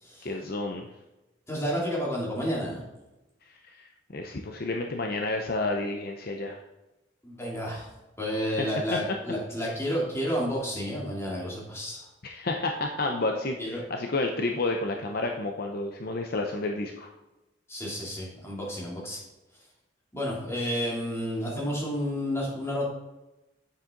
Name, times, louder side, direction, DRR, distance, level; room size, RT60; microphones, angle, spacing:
voice 1, 0.2-0.9 3.7-3.9 4.1-6.6 8.6-9.0 12.2-17.1, left 2 dB, 50° left, 3 dB, 0.7 m, -30 dB
voice 2, 1.5-2.8 7.2-7.9 8.2-12.1 13.6-13.8 17.7-19.2 20.1-22.8, equal, 15° left, -5 dB, 3.0 m, -31 dB
9.0 x 7.4 x 3.9 m, 0.99 s
head